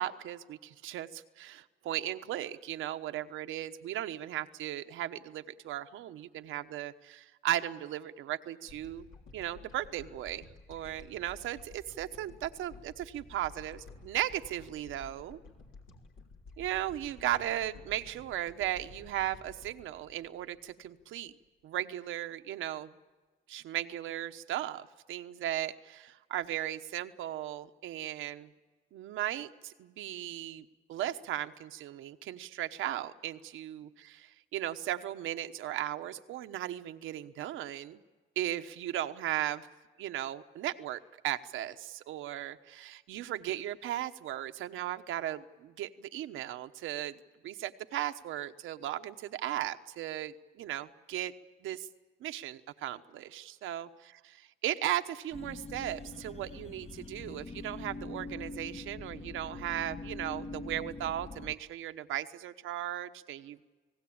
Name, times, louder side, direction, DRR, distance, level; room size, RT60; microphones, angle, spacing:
voice 1, 0.0-9.1 9.3-15.4 16.6-21.3 21.6-22.9 23.5-28.5 28.9-33.9 34.2-38.0 38.4-39.7 40.0-51.3 51.6-51.9 52.2-53.9 54.6-63.6, right 12 dB, 85° right, 9 dB, 1.1 m, -36 dB
sound 1, 8.7-21.2, left 3 dB, 80° left, 3.3 m, -53 dB
sound 2, 55.3-61.5, left 3 dB, 30° left, 1.0 m, -43 dB
29.5 x 18.5 x 8.7 m, 1.4 s
cardioid pair, 90°, 20 cm